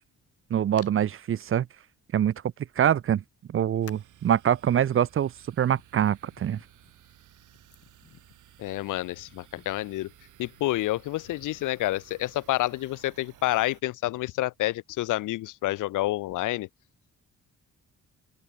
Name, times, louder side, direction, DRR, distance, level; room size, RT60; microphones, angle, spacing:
voice 1, 0.5-1.7 2.1-2.3 2.8-3.2 3.5-5.3 5.6-6.6, right 10 dB, 45° right, 0.6 m, -24 dB
Hands, 0.8-0.9 1.4-1.5 2.7-2.8 3.9-4.2 5.1-9.9 10.3-13.6, left 8 dB, 50° left, 2.7 m, -56 dB
sound 1, 3.8-13.8, right 12 dB, 75° right, 2.7 m, -56 dB
voice 2, 8.6-10.1 10.4-16.7, left 16 dB, 80° left, 0.6 m, -29 dB
open air
cardioid pair, 90°, 30 cm